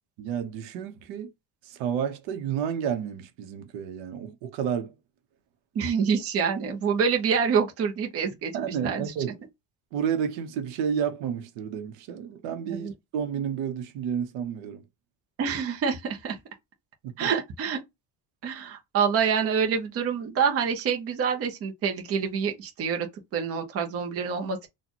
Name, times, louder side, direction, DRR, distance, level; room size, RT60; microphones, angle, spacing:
voice 1, 0.2-1.3 1.6-4.9 8.5-9.4 9.9-14.8 17.0-17.3, right 8 dB, 85° right, 1.1 m, -31 dB
voice 2, 5.7-9.1 12.7-12.9 15.4-16.4 17.2-17.8 18.4-23.1 23.3-24.6, right 6 dB, 35° right, 0.9 m, -26 dB
4.2 x 2.5 x 2.9 m
cardioid pair, 180°, 43 cm